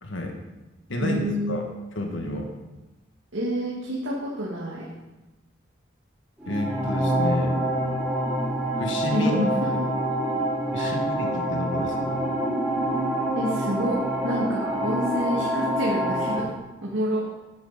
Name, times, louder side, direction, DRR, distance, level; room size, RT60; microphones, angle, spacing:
voice 1, 0.0-0.3 0.9-1.6 1.9-2.5 6.5-7.6 8.8-9.3 10.7-12.2, left 1 dB, 75° left, 3 dB, 1.4 m, -30 dB
voice 2, 1.0-1.6 3.3-4.8 9.1-9.7 10.8-11.0 13.3-16.5 16.8-17.2, equal, 85° right, -5 dB, 1.8 m, -27 dB
sound 1, 6.4-16.4, right 1 dB, 5° right, 2.5 m, -26 dB
10.5 x 8.6 x 4.1 m, 1.1 s
head